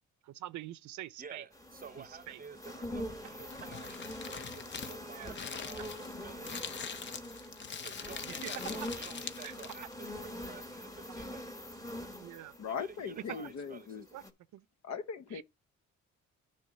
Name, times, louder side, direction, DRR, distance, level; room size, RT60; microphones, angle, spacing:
voice 1, 0.2-1.4 2.0-2.4 5.1-5.3 8.4-8.5 9.4-9.5 12.2-12.5 14.1-14.2 14.5-14.7 15.3-15.4, right 14 dB, 75° right, 0.6 m, -45 dB
voice 2, 1.2-7.2 7.7-11.8 12.6-13.9, right 6 dB, 30° right, 0.7 m, -52 dB
sound 1, 1.5-13.7 14.1-14.3, left 1 dB, 10° left, 1.2 m, -44 dB
Crumpling crinkling, 3.2-9.9, left 6 dB, 40° left, 0.7 m, -43 dB
voice 3, 12.6-14.1 14.8-15.4, left 6 dB, 65° left, 1.0 m, -39 dB
9.0 x 3.2 x 6.6 m
cardioid pair, 90°, 30 cm